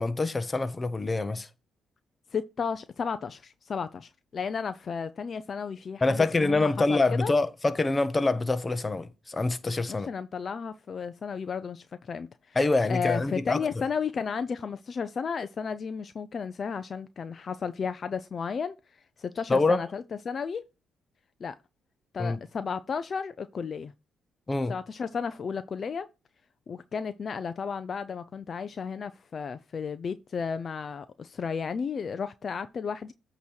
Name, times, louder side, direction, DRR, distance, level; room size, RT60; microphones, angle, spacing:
voice 1, 0.0-1.5 6.0-10.1 12.5-13.8 19.5-19.8 22.2-22.4 24.5-24.7, left 3 dB, 25° left, 0.8 m, -26 dB
voice 2, 2.3-7.3 9.9-12.6 12.9-20.6 21.4-21.6 22.1-23.9 24.7-26.1 26.7-33.1, left 6 dB, 45° left, 0.4 m, -33 dB
8.4 x 3.0 x 6.2 m
cardioid pair, 90°, 0 cm